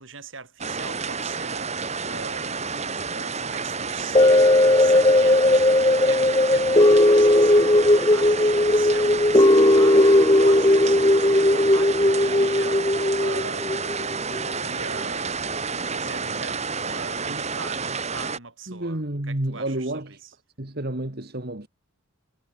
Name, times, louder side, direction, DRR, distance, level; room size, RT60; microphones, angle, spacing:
voice 1, 0.0-14.2 14.5-20.3, right 4 dB, 65° right, 6.4 m, -41 dB
sound 1, 0.6-18.4, right 5 dB, 35° right, 4.5 m, -30 dB
sound 2, 4.1-14.5 15.0-15.1, left 1 dB, 20° left, 1.3 m, -17 dB
voice 2, 18.7-20.2 20.6-21.7, right 1 dB, 50° right, 2.0 m, -30 dB
head